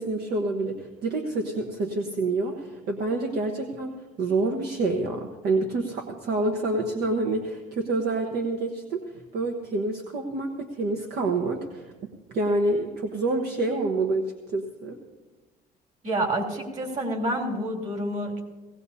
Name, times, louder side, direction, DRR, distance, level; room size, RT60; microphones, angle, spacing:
voice 1, 0.0-3.9 4.2-15.0, right 2 dB, 70° right, 2 dB, 1.2 m, -27 dB
voice 2, 16.0-18.4, right 1 dB, 45° right, 0 dB, 3.6 m, -28 dB
18.5 x 17.0 x 2.8 m, 1.2 s
cardioid pair, 110°, 17 cm